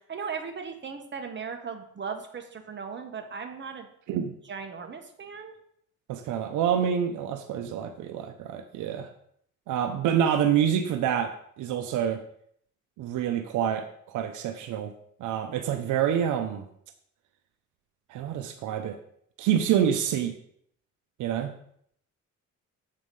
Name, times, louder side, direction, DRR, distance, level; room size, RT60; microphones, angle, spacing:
voice 1, 0.0-3.9 4.5-5.5, right 6 dB, 40° right, 5 dB, 1.4 m, -37 dB
voice 2, 6.1-9.1 9.7-12.2 13.0-14.9 15.2-16.7 18.1-19.0 19.4-20.4 21.2-21.5, right 9 dB, 85° right, 8 dB, 0.7 m, -27 dB
7.6 x 4.9 x 5.4 m, 0.67 s
cardioid pair, 90°, 30 cm